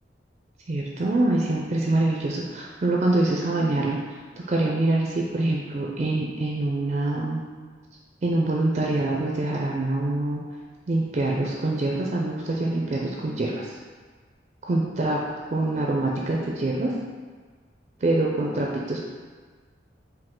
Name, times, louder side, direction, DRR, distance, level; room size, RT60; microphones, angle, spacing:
voice 1, 0.7-4.2 4.5-7.4 8.2-10.4 10.9-13.8 14.6-15.2 15.5-16.9 18.0-19.0, right 2 dB, 40° right, -2 dB, 0.4 m, -25 dB
4.8 x 2.7 x 3.6 m, 1.5 s
head